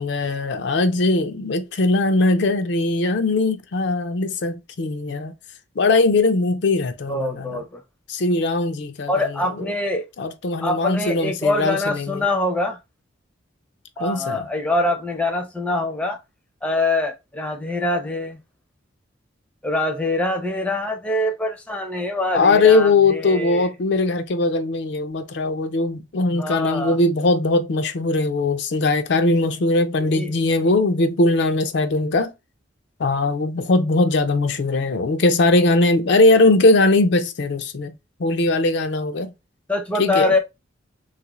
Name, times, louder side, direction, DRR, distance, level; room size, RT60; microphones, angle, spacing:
voice 1, 0.0-5.3 5.8-7.6 8.1-9.7 10.2-12.2 14.0-14.4 22.3-32.3 33.0-37.9 38.2-39.3 40.0-40.3, left 2 dB, 65° left, 0.5 m, -20 dB
voice 2, 7.1-7.8 9.1-10.1 10.6-12.8 14.0-16.2 16.6-18.4 19.6-23.7 26.3-27.0 30.0-30.4 34.0-34.2 39.7-40.4, left 2 dB, 5° left, 0.5 m, -24 dB
3.2 x 2.4 x 3.0 m
head